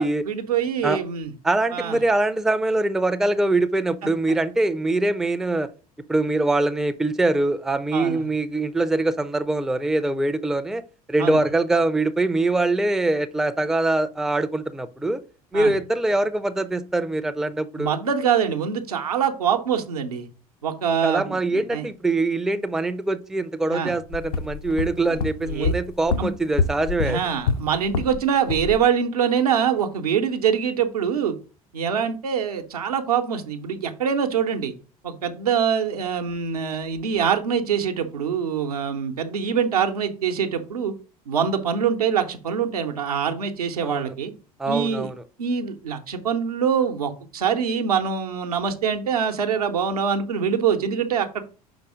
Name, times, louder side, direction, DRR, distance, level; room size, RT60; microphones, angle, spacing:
voice 1, 0.0-1.3 1.7-2.0 7.9-8.3 11.2-11.4 15.5-15.7 17.8-20.3 20.6-21.9 23.7-23.9 25.1-25.2 25.4-25.7 26.2-26.3 27.0-31.3 31.7-34.7 35.0-40.9 41.3-44.3 44.7-45.1 45.4-51.4, right 7 dB, 80° right, 0.8 m, -24 dB
voice 2, 1.4-5.7 6.1-10.8 11.1-15.2 15.5-17.9 21.0-27.2 43.8-44.1 44.6-45.1, right 2 dB, 5° right, 0.4 m, -23 dB
sound 1, 24.1-28.2 28.5-28.8, left 4 dB, 70° left, 0.5 m, -26 dB
5.3 x 3.9 x 4.8 m
figure-of-eight pair, 65°, 19 cm